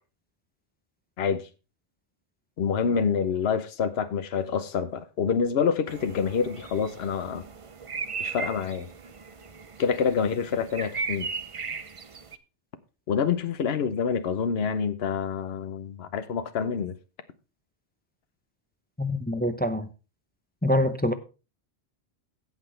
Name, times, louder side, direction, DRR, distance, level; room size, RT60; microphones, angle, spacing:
voice 1, 1.2-1.5 2.6-7.4 8.2-8.9 9.8-11.3 13.1-16.9, left 6 dB, 65° left, 1.1 m, -27 dB
sound 1, 5.9-12.4, right 5 dB, 35° right, 0.6 m, -37 dB
voice 2, 19.0-19.9 20.6-21.1, left 1 dB, 10° left, 0.6 m, -25 dB
16.5 x 6.0 x 3.3 m
omnidirectional pair, 1.2 m